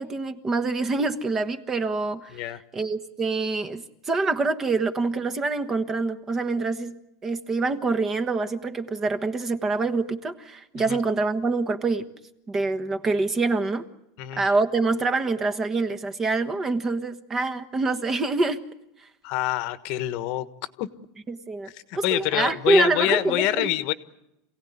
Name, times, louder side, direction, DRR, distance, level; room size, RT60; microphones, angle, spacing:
voice 1, 0.0-2.4 2.7-7.0 7.2-12.1 12.5-13.8 14.4-18.6 21.3-21.7 22.0-23.7, right 3 dB, 20° right, 10 dB, 1.4 m, -25 dB
voice 2, 19.2-20.4 20.8-20.9 21.6-23.9, left 15 dB, 55° left, 12 dB, 1.3 m, -26 dB
27.5 x 17.5 x 9.6 m, 0.89 s
supercardioid pair, 145°, 2 cm